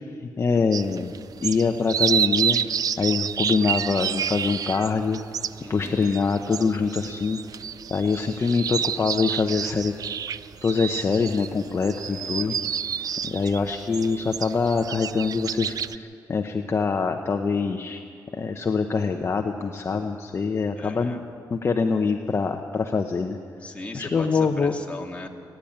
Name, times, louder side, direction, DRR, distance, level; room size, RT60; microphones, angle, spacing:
voice 1, 0.4-1.1 1.4-2.6 3.0-5.2 5.7-7.4 7.9-9.9 10.6-12.5 13.2-18.0 18.3-21.2 21.5-23.4 23.9-24.7, left 5 dB, 35° left, 4 dB, 0.9 m, -24 dB
sound 1, 0.7-16.0, right 8 dB, 55° right, 0.5 m, -29 dB
voice 2, 5.6-6.1 12.1-12.6 20.8-21.2 23.6-25.3, left 2 dB, 15° left, 0 dB, 2.1 m, -38 dB
28.5 x 10.5 x 8.8 m, 2.4 s
cardioid pair, 115°, 8 cm